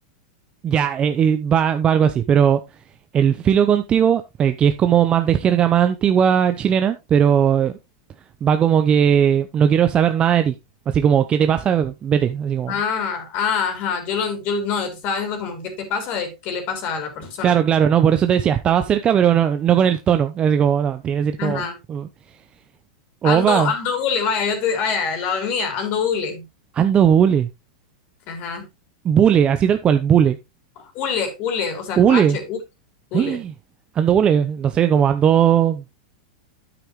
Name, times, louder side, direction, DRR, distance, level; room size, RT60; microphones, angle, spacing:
voice 1, 0.6-2.6 3.1-7.7 8.4-10.5 10.9-12.7 17.4-22.1 23.2-23.7 26.7-27.5 29.0-30.4 32.0-32.4 33.1-33.5 33.9-35.8, right 8 dB, 25° right, 0.7 m, -18 dB
voice 2, 12.7-17.6 21.4-21.8 23.2-26.4 28.3-28.6 30.8-32.6 33.1-33.4, left 6 dB, 45° left, 3.5 m, -25 dB
9.0 x 9.0 x 3.1 m
hypercardioid pair, 120°, 4 cm